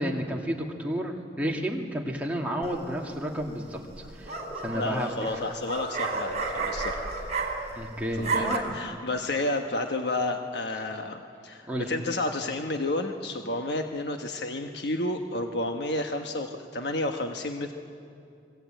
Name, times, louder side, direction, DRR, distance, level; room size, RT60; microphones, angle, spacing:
voice 1, 0.0-3.8 4.2-5.1 7.8-8.7 11.7-11.9, equal, 10° right, -1 dB, 2.3 m, -31 dB
sound 1, 2.6-3.1 3.9-7.9 8.1-8.6, right 4 dB, 40° right, 4.0 m, -32 dB
voice 2, 4.7-7.1 8.2-17.7, left 2 dB, 65° left, 4 dB, 1.2 m, -31 dB
26.0 x 21.5 x 9.1 m, 2.5 s
head